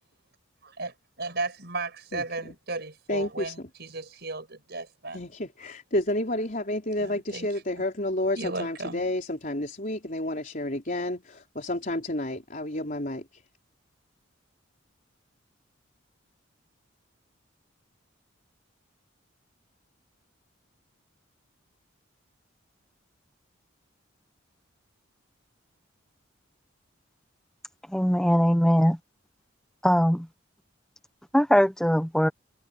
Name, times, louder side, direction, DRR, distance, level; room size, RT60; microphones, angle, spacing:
voice 1, 0.6-5.2 7.0-7.5 8.3-9.0, right 3 dB, 55° right, 6.2 m, -35 dB
voice 2, 2.1-2.5 3.1-3.7 5.1-13.4, left 1 dB, 40° left, 4.4 m, -30 dB
voice 3, 27.9-29.0 29.8-30.3 31.3-32.3, equal, 5° left, 0.9 m, -21 dB
head